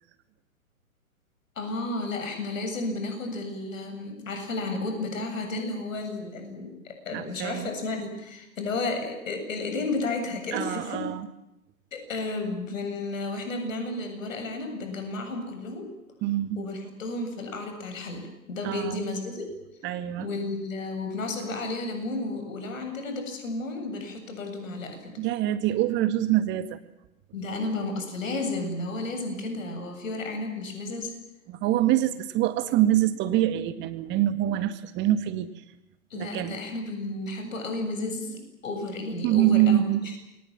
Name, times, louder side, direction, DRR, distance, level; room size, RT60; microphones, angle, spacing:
voice 1, 1.6-11.1 11.9-15.9 16.6-19.5 20.2-25.2 27.3-31.2 36.1-40.2, left 2 dB, 65° left, 6 dB, 7.8 m, -32 dB
voice 2, 7.1-7.7 10.5-11.3 16.2-16.6 18.6-19.1 19.8-20.3 25.2-26.8 31.5-35.5 36.2-36.6 39.2-40.0, right 13 dB, 25° right, 11 dB, 2.0 m, -25 dB
28.5 x 23.0 x 7.5 m, 0.88 s
figure-of-eight pair, 120°, 43 cm